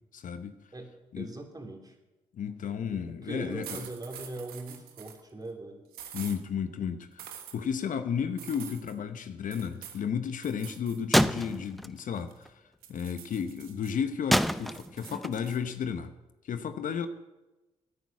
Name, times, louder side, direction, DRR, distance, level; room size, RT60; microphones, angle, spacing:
voice 1, 0.1-0.6 1.1-1.3 2.3-3.9 6.1-12.5 12.9-16.1 16.4-17.1, left 7 dB, 60° left, 0.9 m, -33 dB
voice 2, 1.2-1.9 2.9-5.8, right 2 dB, 25° right, 3.0 m, -40 dB
sound 1, 3.6-5.2 5.9-6.4 7.2-7.6 8.4-8.9 9.5-10.0 10.4-11.0 11.3-12.4 12.8-13.9 14.3-15.6, right 10 dB, 80° right, 1.4 m, -46 dB
sound 2, 11.1-12.2 12.5-12.6 14.3-15.5, equal, ahead, 0.6 m, -26 dB
11.0 x 9.6 x 8.4 m
hypercardioid pair, 45°, 15 cm